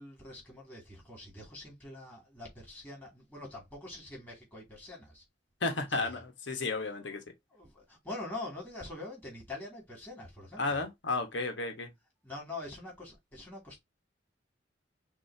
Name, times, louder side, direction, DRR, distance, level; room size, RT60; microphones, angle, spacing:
voice 1, 0.0-5.2 5.9-6.2 7.0-7.2 7.5-10.8 12.2-13.8, left 2 dB, 10° left, 2.5 m, -44 dB
voice 2, 5.6-7.2 10.6-11.9, left 3 dB, 75° left, 1.3 m, -33 dB
6.1 x 2.8 x 2.7 m
head